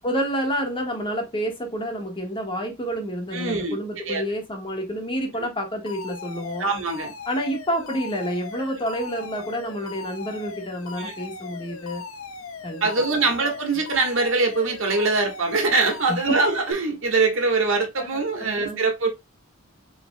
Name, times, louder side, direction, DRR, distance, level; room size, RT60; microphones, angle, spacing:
voice 1, 0.0-6.7 7.3-12.0 12.6-13.2 16.3-16.4 18.0-18.8, equal, 25° left, 1.3 m, -29 dB
voice 2, 3.3-3.8 4.1-4.2 6.6-7.1 11.0-11.1 12.8-19.1, right 3 dB, 70° right, 1.6 m, -23 dB
Alarm, 5.9-16.7, left 5 dB, 80° left, 0.9 m, -39 dB
4.7 x 4.2 x 2.2 m
head